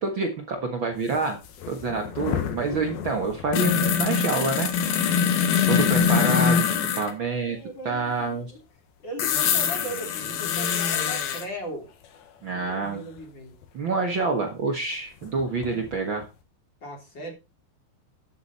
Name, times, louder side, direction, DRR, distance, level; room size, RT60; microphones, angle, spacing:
voice 1, 0.0-1.4 1.7-4.7 5.7-7.6 7.8-8.5 12.4-13.0 13.7-16.2, right 4 dB, 85° right, 3 dB, 1.0 m, -27 dB
sound 1, 1.1-1.2 1.5-7.1 9.2-11.5 13.6-13.7 15.3-16.0 16.2-16.3, left 7 dB, 70° left, 3.2 m, -24 dB
voice 2, 7.3-8.6 9.0-11.9 12.5-13.6 15.7-15.8 16.8-17.3, equal, 30° left, 2 dB, 3.7 m, -38 dB
12.5 x 8.5 x 4.2 m, 0.28 s
omnidirectional pair, 4.8 m